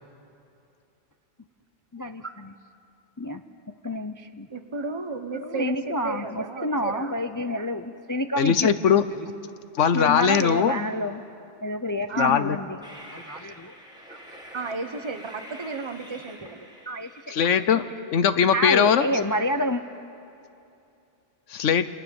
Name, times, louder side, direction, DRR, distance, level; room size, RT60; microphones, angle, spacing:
voice 1, 1.9-2.5 3.2-3.4 3.8-4.5 5.3-8.7 9.9-11.2 11.6-12.8 13.1-13.7 14.1-14.2 16.9-17.3 17.6-17.9 18.5-19.8, left 1 dB, 25° left, 8 dB, 0.5 m, -28 dB
voice 2, 4.5-7.1 12.1-12.4 14.5-16.6, right 4 dB, 25° right, 6 dB, 1.1 m, -33 dB
voice 3, 8.4-9.0 9.8-10.7 12.2-12.6 17.3-17.8 18.1-19.1 21.5-21.9, left 8 dB, 85° left, 12 dB, 1.2 m, -20 dB
Train, 12.8-17.8, equal, 5° right, 3.5 m, -46 dB
28.5 x 23.5 x 7.1 m, 2.7 s
omnidirectional pair, 1.2 m